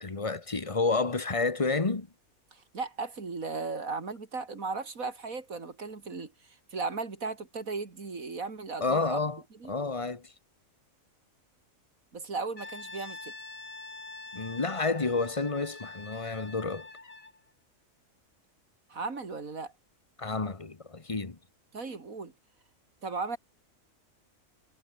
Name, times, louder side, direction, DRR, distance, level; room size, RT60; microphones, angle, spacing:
voice 1, 0.0-2.1 8.8-9.4 9.7-10.3 14.3-16.9 20.2-21.4, left 3 dB, 25° left, 1.4 m, -30 dB
voice 2, 2.5-9.2 9.6-9.7 12.1-13.3 18.9-19.7 21.7-22.3 23.0-23.4, right 4 dB, 80° right, 3.2 m, -36 dB
Brass instrument, 12.6-17.4, left 3 dB, 70° left, 4.1 m, -45 dB
omnidirectional pair, 1.4 m